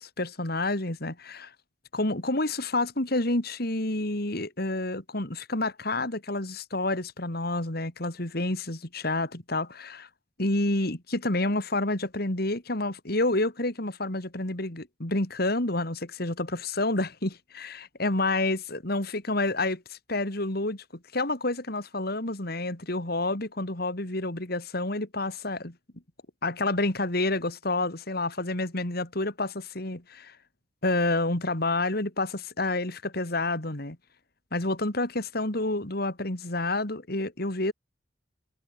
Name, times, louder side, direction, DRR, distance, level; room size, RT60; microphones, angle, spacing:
voice 1, 0.0-1.5 1.9-10.1 10.4-20.8 21.1-25.7 26.4-30.3 30.8-34.0 34.5-37.7, left 2 dB, 60° left, 3.3 m, -29 dB
head